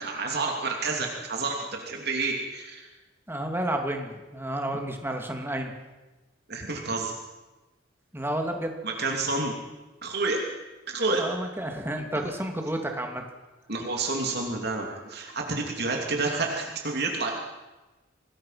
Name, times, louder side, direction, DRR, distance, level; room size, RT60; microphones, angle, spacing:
voice 1, 0.0-2.8 6.5-7.1 8.8-9.5 10.0-10.4 10.9-11.2 13.7-17.3, right 3 dB, 60° right, 1 dB, 3.1 m, -29 dB
voice 2, 3.3-5.7 8.1-8.8 11.2-13.2, right 1 dB, 10° right, 3 dB, 2.8 m, -31 dB
26.5 x 20.0 x 6.0 m, 1.2 s
head